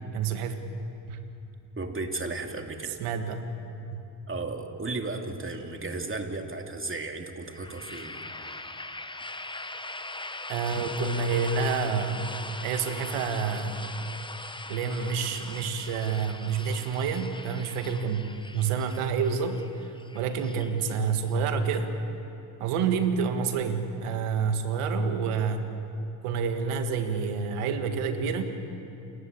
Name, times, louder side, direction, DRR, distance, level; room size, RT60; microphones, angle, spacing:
voice 1, 0.1-0.7 1.1-1.2 3.0-3.4 10.5-12.3 12.6-13.8 14.7-21.9 22.6-25.7 26.2-28.4, right 5 dB, 90° right, 7 dB, 1.8 m, -28 dB
voice 2, 1.8-3.0 4.3-8.2 8.5-8.8, right 3 dB, 25° right, 4 dB, 2.7 m, -35 dB
sound 1, 7.5-21.3, left 2 dB, 10° left, 1.0 m, -41 dB
28.5 x 14.0 x 8.7 m, 2.8 s
supercardioid pair, 65°, 50 cm